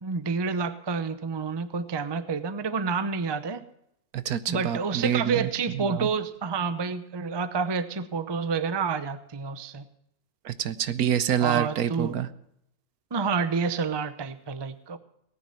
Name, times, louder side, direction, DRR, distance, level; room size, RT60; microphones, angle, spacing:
voice 1, 0.0-3.6 4.5-9.8 11.4-12.1 13.1-15.0, right 5 dB, 25° right, 12 dB, 0.6 m, -29 dB
voice 2, 4.1-6.1 10.4-12.3, right 9 dB, 70° right, 13 dB, 1.2 m, -27 dB
18.5 x 9.8 x 5.6 m, 0.78 s
omnidirectional pair, 1.7 m